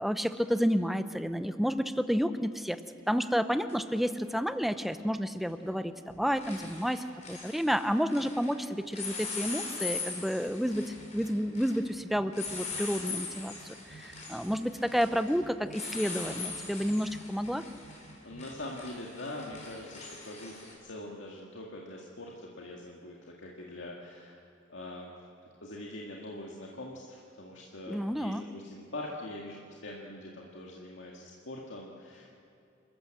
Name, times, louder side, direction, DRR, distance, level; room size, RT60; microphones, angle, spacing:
voice 1, 0.0-2.8 3.1-17.6 27.9-28.5, equal, ahead, 10 dB, 0.7 m, -30 dB
sound 1, 3.7-3.8 5.5-5.8 6.1-8.5 8.9-20.7, left 4 dB, 35° left, 4.7 m, -41 dB
voice 2, 18.2-24.4 24.7-25.1 25.6-32.4, left 1 dB, 75° left, -2 dB, 2.1 m, -43 dB
29.0 x 14.0 x 7.8 m, 2.7 s
head